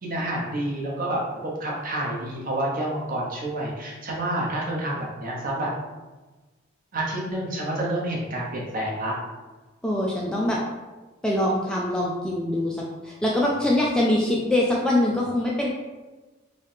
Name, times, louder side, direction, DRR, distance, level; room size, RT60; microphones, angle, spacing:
voice 1, 0.0-5.7 6.9-9.1, right 1 dB, 45° right, -3 dB, 0.8 m, -28 dB
voice 2, 9.8-10.6 11.2-12.8 13.0-15.7, left 1 dB, 5° left, -4 dB, 0.3 m, -23 dB
3.1 x 2.7 x 3.3 m, 1.2 s
head